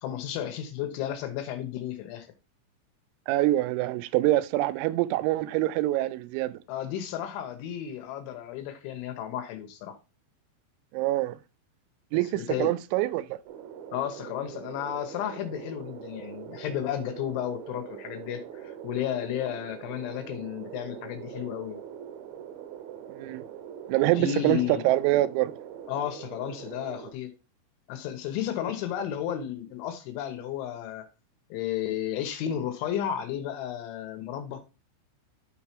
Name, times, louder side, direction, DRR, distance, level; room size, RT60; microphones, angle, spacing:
voice 1, 0.0-2.3 6.7-10.0 12.2-12.8 13.9-21.8 24.1-24.8 25.9-27.3 27.9-31.1 31.5-34.6, left 10 dB, 75° left, 3.0 m, -33 dB
voice 2, 3.3-6.6 10.9-11.4 12.1-13.4 23.1-23.4 23.9-25.5, right 16 dB, 90° right, 3.3 m, -25 dB
sound 1, 13.5-27.1, right 9 dB, 70° right, 3.1 m, -43 dB
12.5 x 4.7 x 2.8 m
omnidirectional pair, 6.0 m